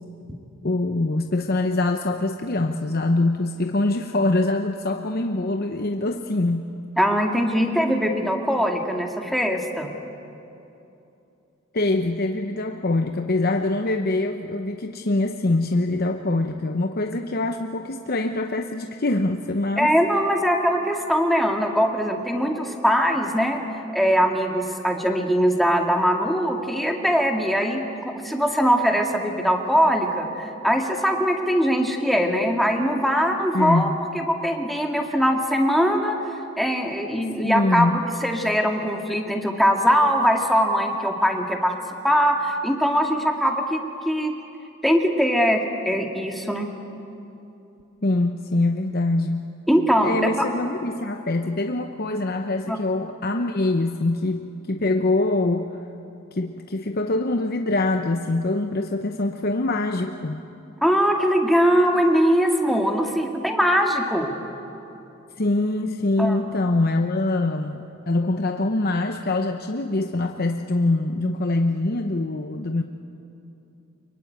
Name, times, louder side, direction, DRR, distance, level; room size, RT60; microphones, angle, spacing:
voice 1, 0.6-6.7 11.7-19.9 33.5-34.0 37.4-38.1 48.0-49.5 50.0-55.8 56.3-60.4 65.4-72.8, left 2 dB, 45° left, 5 dB, 0.8 m, -24 dB
voice 2, 7.0-9.9 19.8-23.6 23.9-33.9 34.1-36.2 36.6-37.9 38.2-41.7 42.0-44.3 44.8-46.7 49.7-50.5 52.7-52.8 60.8-64.3 66.2-66.4, equal, ahead, 2 dB, 2.0 m, -21 dB
24.0 x 22.5 x 9.4 m, 2.9 s
head